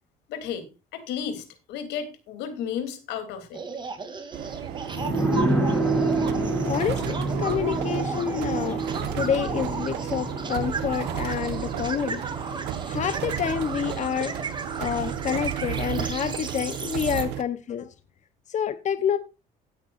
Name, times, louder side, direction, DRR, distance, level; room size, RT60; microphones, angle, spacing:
voice 1, 0.3-3.6, left 8 dB, 90° left, 3.4 m, -33 dB
sound 1, 3.5-17.2, right 4 dB, 25° right, 2.8 m, -35 dB
sound 2, 4.3-17.4, right 10 dB, 90° right, 1.2 m, -33 dB
sound 3, 4.9-14.2 14.5-14.6, right 2 dB, 5° left, 6.9 m, -29 dB
voice 2, 6.6-8.8 9.1-12.2 12.9-14.3 14.8-17.9 18.5-19.2, left 8 dB, 45° left, 1.0 m, -28 dB
16.0 x 9.6 x 2.6 m
cardioid pair, 110°, 17 cm